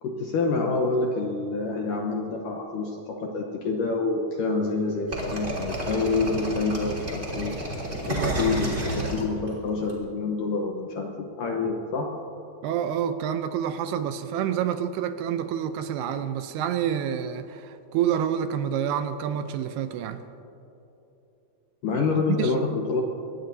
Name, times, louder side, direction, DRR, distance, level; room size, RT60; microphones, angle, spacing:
voice 1, 0.0-7.6 8.1-12.2 21.8-23.0, left 3 dB, 70° left, 1 dB, 2.1 m, -27 dB
sound 1, 5.1-9.9, right 1 dB, 20° right, 2.6 m, -30 dB
voice 2, 8.2-8.5 12.6-20.2 21.9-22.5, right 9 dB, 80° right, 9 dB, 2.5 m, -28 dB
24.0 x 19.5 x 2.7 m, 2.9 s
omnidirectional pair, 4.9 m